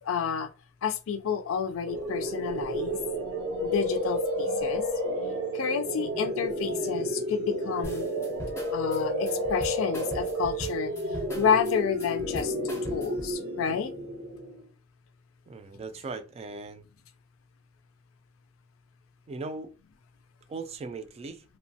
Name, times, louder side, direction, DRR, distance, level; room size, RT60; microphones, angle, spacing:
voice 1, 0.0-0.5 0.8-3.0 3.6-4.8 5.5-8.1 8.7-10.9 11.3-12.5 12.9-13.9, left 7 dB, 75° left, 0.4 m, -30 dB
sound 1, 1.9-14.7, equal, 85° right, 0.9 m, -31 dB
sound 2, 7.8-13.3, left 1 dB, 15° left, 0.7 m, -40 dB
voice 2, 15.5-16.8 19.3-19.7 20.5-21.4, right 3 dB, 30° right, 0.3 m, -38 dB
2.9 x 2.1 x 2.6 m
head